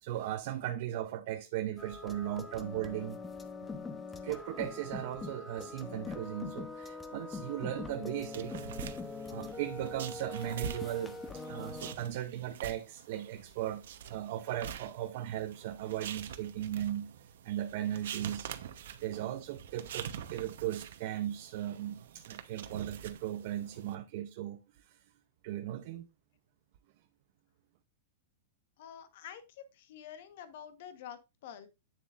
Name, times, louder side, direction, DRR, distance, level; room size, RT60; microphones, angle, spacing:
voice 1, 0.0-3.2 4.2-8.7 9.3-17.1 17.4-18.5 19.0-25.0 25.4-26.1, right 12 dB, 50° right, 0.6 m, -37 dB
sound 1, 1.8-11.9, left 3 dB, 10° left, 0.8 m, -43 dB
sound 2, 8.3-23.9, right 8 dB, 75° right, 0.9 m, -46 dB
voice 2, 28.8-31.7, left 9 dB, 60° left, 1.2 m, -48 dB
9.1 x 7.1 x 2.5 m
supercardioid pair, 160°, 0 cm